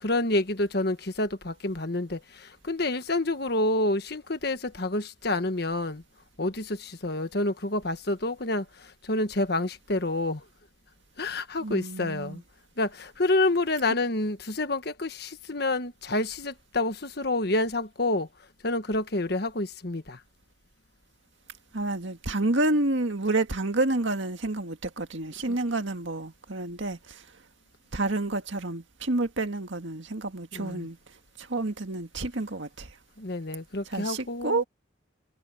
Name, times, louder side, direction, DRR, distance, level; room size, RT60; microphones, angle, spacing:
voice 1, 0.0-6.0 6.4-10.4 11.2-12.4 12.8-18.3 18.6-20.2 25.5-25.6 30.5-30.9 33.2-34.6, left 2 dB, 55° left, 1.5 m, -28 dB
voice 2, 11.6-12.4 21.7-27.2 27.9-31.0 31.4-32.9 33.9-34.6, right 2 dB, 70° right, 1.9 m, -29 dB
head